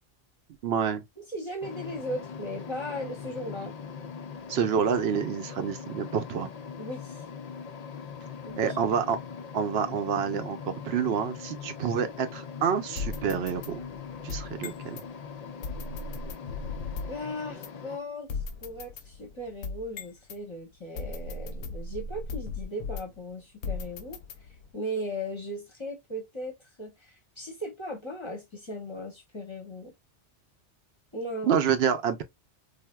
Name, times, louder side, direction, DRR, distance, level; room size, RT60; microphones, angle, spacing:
voice 1, 0.6-1.0 4.5-6.5 8.6-9.2 9.5-13.8 14.2-15.0 31.4-32.2, right 7 dB, 65° right, 0.8 m, -28 dB
voice 2, 1.2-3.8 6.8-7.2 8.4-8.8 17.1-18.3 18.6-24.2 24.7-29.9 31.1-31.5, equal, 30° left, 0.7 m, -37 dB
sound 1, 1.6-18.0, left 6 dB, 70° left, 0.3 m, -41 dB
sound 2, 13.0-15.1 15.6-17.2 17.6-17.7 18.3-20.4 21.0-23.2 23.6-24.7, left 4 dB, 90° left, 1.0 m, -37 dB
3.5 x 2.5 x 2.2 m
omnidirectional pair, 1.2 m